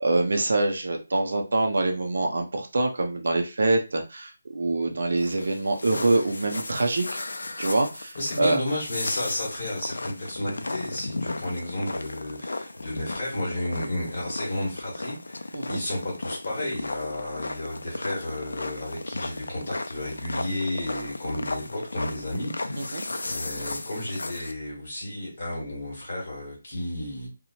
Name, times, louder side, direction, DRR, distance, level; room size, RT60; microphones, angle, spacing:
voice 1, 0.0-7.1 7.6-8.6 15.5-15.8 22.8-23.0, right 2 dB, 50° right, 3 dB, 0.4 m, -25 dB
sound 1, 5.2-24.5, left 2 dB, 85° left, 0.3 m, -35 dB
voice 2, 8.1-27.3, left 1 dB, 30° left, -4 dB, 1.2 m, -32 dB
2.8 x 2.0 x 2.7 m, 0.29 s
hypercardioid pair, 180°, 0 cm